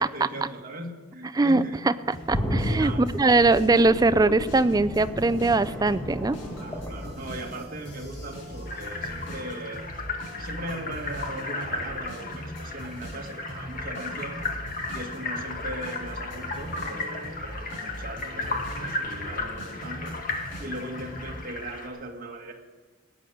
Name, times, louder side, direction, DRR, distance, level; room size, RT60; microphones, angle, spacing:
voice 1, 0.0-1.8 2.7-3.0 6.6-9.8 10.4-14.4 14.9-20.1 20.6-22.5, right 1 dB, 50° right, 1 dB, 2.1 m, -38 dB
voice 2, 1.3-6.4, right 3 dB, 20° right, 14 dB, 0.4 m, -21 dB
sound 1, 2.0-21.4, equal, 70° left, 6.0 m, -40 dB
sound 2, 2.3-8.1 8.5-8.6, equal, 10° left, 1.9 m, -33 dB
sound 3, 8.7-21.9, left 3 dB, 45° left, 2.0 m, -35 dB
18.0 x 9.3 x 6.5 m, 1.4 s
head